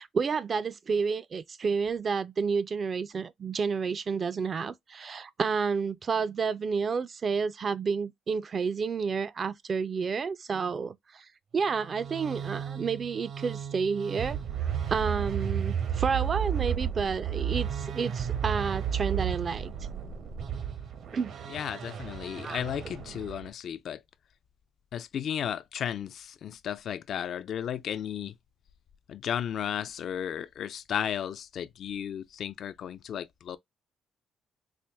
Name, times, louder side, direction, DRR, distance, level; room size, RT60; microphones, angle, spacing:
voice 1, 0.0-11.3 11.5-19.7 21.1-21.3 22.4-22.6, right 5 dB, 45° right, 0.4 m, -30 dB
sound 1, 11.6-23.5, right 8 dB, 65° right, 1.0 m, -33 dB
voice 2, 21.5-24.0 24.9-28.3 29.1-33.6, left 9 dB, 65° left, 0.4 m, -34 dB
4.3 x 2.1 x 3.4 m
cardioid pair, 90°, 0 cm